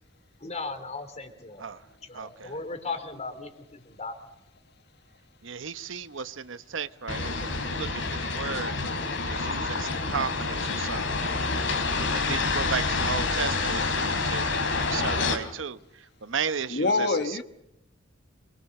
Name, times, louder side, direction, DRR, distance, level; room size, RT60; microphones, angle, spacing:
voice 1, 0.4-1.6 2.0-4.2, left 3 dB, 35° left, 8 dB, 3.2 m, -37 dB
voice 2, 2.1-2.5 5.4-8.8 9.3-11.3 12.1-15.8 16.2-17.4, right 6 dB, 80° right, 13 dB, 1.0 m, -34 dB
sound 1, 7.1-15.4, left 3 dB, 75° left, 3.3 m, -28 dB
voice 3, 16.7-17.4, left 3 dB, 60° left, 8 dB, 1.6 m, -25 dB
26.5 x 22.5 x 6.6 m, 0.84 s
head